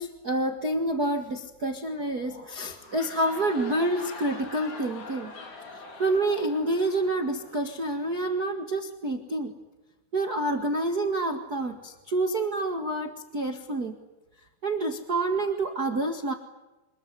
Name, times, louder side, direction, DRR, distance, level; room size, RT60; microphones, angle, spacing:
voice 1, 0.0-5.3 5.7-9.5 10.1-14.0 14.6-16.3, right 2 dB, 40° right, 4 dB, 1.3 m, -28 dB
sound 1, 2.7-8.2, left 3 dB, 45° left, 4.7 m, -44 dB
26.5 x 21.5 x 9.6 m, 1.0 s
omnidirectional pair, 4.7 m